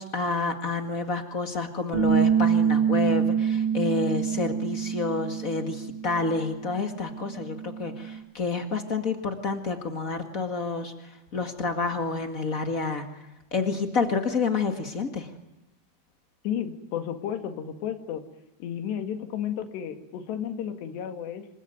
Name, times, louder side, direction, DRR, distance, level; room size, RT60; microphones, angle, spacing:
voice 1, 0.0-13.0 13.5-15.3, left 4 dB, 90° left, 6 dB, 0.7 m, -29 dB
Bass guitar, 1.9-8.2, right 7 dB, 85° right, 6.3 m, -26 dB
voice 2, 16.4-18.2 18.6-21.5, left 9 dB, 75° left, 7 dB, 4.2 m, -32 dB
27.5 x 22.5 x 9.3 m, 0.95 s
omnidirectional pair, 5.1 m